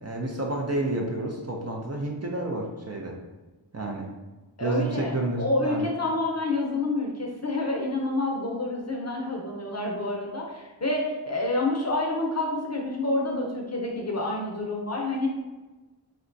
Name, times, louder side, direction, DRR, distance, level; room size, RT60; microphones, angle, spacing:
voice 1, 0.0-3.1 3.7-4.1 4.6-5.9, right 2 dB, 35° right, -1 dB, 0.4 m, -30 dB
voice 2, 4.6-15.3, left 2 dB, 35° left, -1 dB, 0.6 m, -28 dB
3.7 x 2.2 x 2.5 m, 1.2 s
wide cardioid pair, 45°, 46 cm